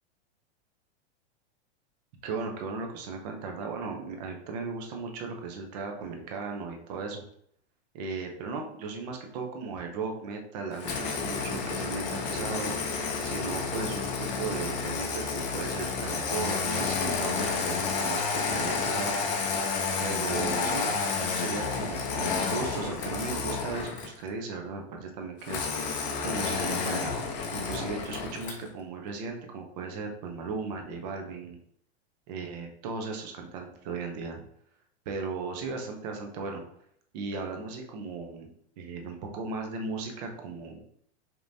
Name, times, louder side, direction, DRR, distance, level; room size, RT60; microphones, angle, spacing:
voice 1, 2.2-7.2 7.9-13.0 13.2-19.2 20.0-27.1 27.5-31.6 32.3-34.4 35.1-36.6 37.1-38.5 38.8-40.8, right 4 dB, 40° right, 3 dB, 0.7 m, -36 dB
Engine starting, 10.8-24.2 25.5-28.7, left 5 dB, 40° left, 0.7 m, -30 dB
5.2 x 3.0 x 2.6 m, 0.68 s
supercardioid pair, 160°, 33 cm